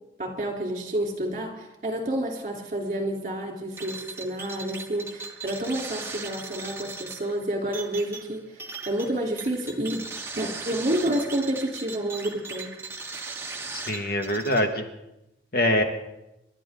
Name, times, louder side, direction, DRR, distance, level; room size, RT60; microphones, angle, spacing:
voice 1, 0.2-10.0 10.4-12.7, right 1 dB, 40° right, 2 dB, 3.5 m, -29 dB
sound 1, 3.8-14.6, right 4 dB, 15° right, 1.4 m, -38 dB
voice 2, 13.7-14.9 15.5-15.8, left 1 dB, 60° left, 5 dB, 1.8 m, -24 dB
28.5 x 12.0 x 3.8 m, 0.89 s
head